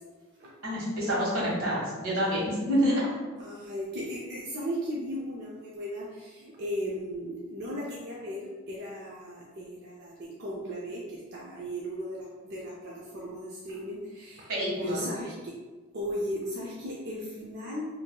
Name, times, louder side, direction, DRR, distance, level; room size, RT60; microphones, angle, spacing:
voice 1, 0.6-3.1 14.5-15.0, equal, 80° right, -5 dB, 1.4 m, -27 dB
voice 2, 3.4-14.5 14.8-15.5 15.9-17.8, equal, 50° right, -4 dB, 0.5 m, -36 dB
4.5 x 2.7 x 2.2 m, 1.3 s
head